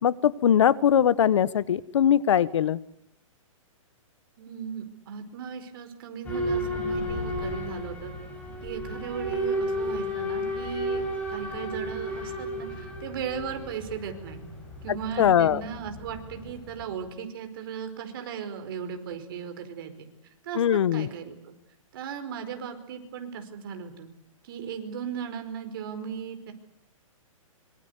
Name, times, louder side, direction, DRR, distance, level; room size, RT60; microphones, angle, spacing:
voice 1, 0.0-2.8 15.2-15.6 20.5-21.1, left 9 dB, 60° left, 19 dB, 1.1 m, -21 dB
voice 2, 4.4-8.1 8.6-11.0 11.3-14.4 14.8-20.1 20.4-21.4 21.9-24.1 24.4-26.5, right 7 dB, 40° right, 7 dB, 4.9 m, -37 dB
Boat Water vehicle / Alarm, 6.2-16.9, equal, 10° left, 5.4 m, -33 dB
25.5 x 25.0 x 8.3 m, 0.80 s
hypercardioid pair, 170°, 18 cm